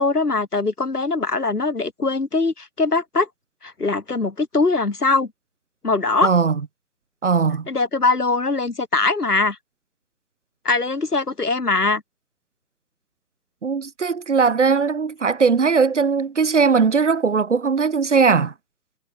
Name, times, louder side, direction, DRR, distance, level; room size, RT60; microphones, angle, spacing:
voice 1, 0.0-3.3 3.6-5.3 5.8-6.3 7.7-9.6 10.6-12.0, left 3 dB, 65° left, 4.8 m, -21 dB
voice 2, 6.2-6.5 7.2-7.7 13.6-18.5, right 5 dB, 45° right, 1.4 m, -19 dB
figure-of-eight pair, 145°, 49 cm